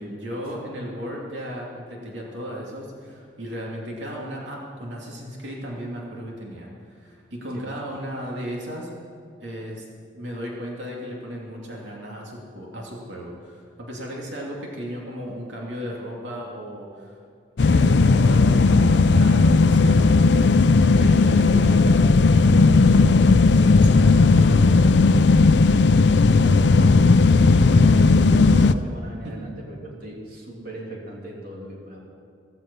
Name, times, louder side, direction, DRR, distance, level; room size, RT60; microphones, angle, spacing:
voice 1, 0.0-8.9 9.4-9.8 10.1-17.2 17.6-25.0 29.2-29.4, equal, 85° right, -2 dB, 2.8 m, -35 dB
sound 1, 17.6-28.7, left 3 dB, 70° left, 0.5 m, -16 dB
voice 2, 26.1-32.0, right 1 dB, 55° right, -2 dB, 3.1 m, -38 dB
16.0 x 15.5 x 5.5 m, 2.3 s
head